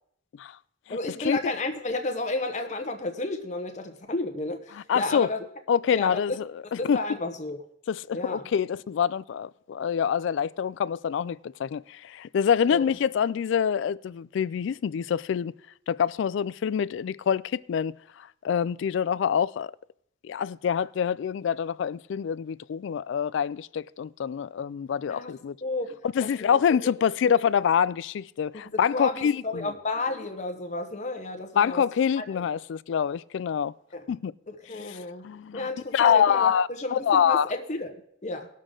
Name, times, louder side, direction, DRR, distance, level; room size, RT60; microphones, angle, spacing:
voice 1, 0.9-5.5 5.9-6.4 6.8-7.6 8.1-8.4 12.7-12.9 25.1-25.3 25.6-27.0 27.3-27.4 28.5-31.8 32.2-32.4 33.9-34.0 34.5-35.3 35.5-38.5, left 2 dB, 35° left, 0.9 m, -32 dB
voice 2, 4.9-5.3 5.7-7.0 7.9-15.5 15.9-19.7 20.2-25.5 26.1-29.7 31.6-33.7 34.1-34.3 34.9-35.0 35.2-37.5, left 7 dB, 65° left, 0.3 m, -26 dB
19.0 x 6.5 x 3.7 m
head